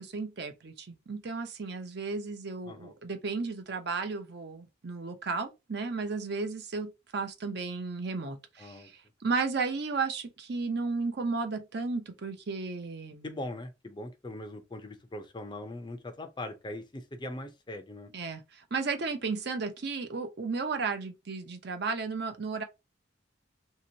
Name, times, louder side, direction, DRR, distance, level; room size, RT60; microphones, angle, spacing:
voice 1, 0.0-13.3 18.1-22.6, right 4 dB, 60° right, 0.6 m, -34 dB
voice 2, 8.6-8.9 13.2-18.1, left 1 dB, 25° left, 0.5 m, -41 dB
3.0 x 2.8 x 2.7 m
head